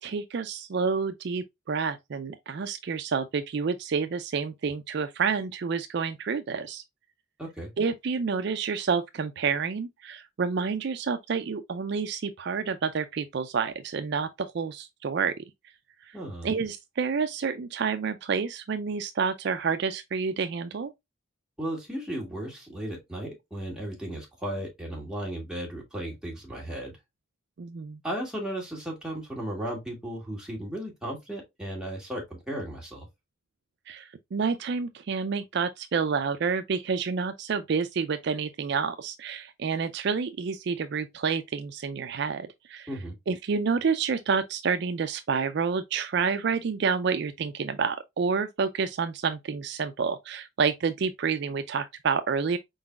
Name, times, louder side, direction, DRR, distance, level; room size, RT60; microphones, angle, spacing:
voice 1, 0.0-6.8 7.8-15.3 16.1-16.2 16.4-20.9 27.6-28.0 33.9-42.9 43.3-52.6, right 5 dB, 55° right, 0.4 m, -29 dB
voice 2, 7.4-7.7 16.1-16.5 21.6-26.9 28.0-33.1 42.9-43.2, right 1 dB, 5° right, 1.9 m, -35 dB
4.7 x 3.9 x 2.3 m
head